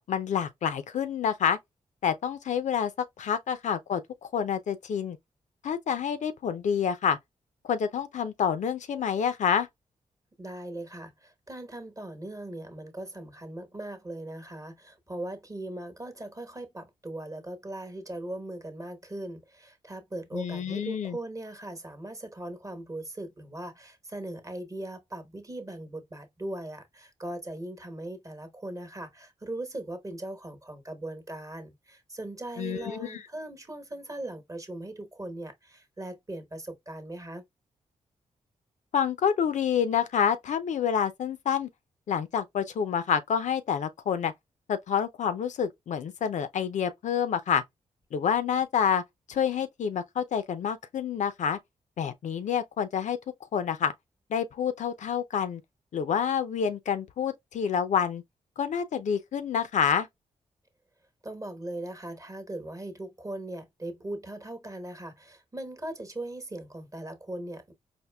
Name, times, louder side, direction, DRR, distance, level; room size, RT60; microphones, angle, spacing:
voice 1, 0.0-1.6 2.0-2.9 3.2-5.2 5.6-7.2 7.6-9.7 20.3-21.2 32.6-33.2 38.9-41.7 42.1-44.3 44.7-47.6 48.1-49.0 49.3-51.6 52.0-53.2 53.5-53.9 54.3-55.6 55.9-58.2 58.6-60.1, left 7 dB, 70° left, 0.5 m, -28 dB
voice 2, 10.4-37.4 61.2-67.7, right 1 dB, 25° right, 1.1 m, -39 dB
4.3 x 2.6 x 2.2 m
cardioid pair, 60°, 13 cm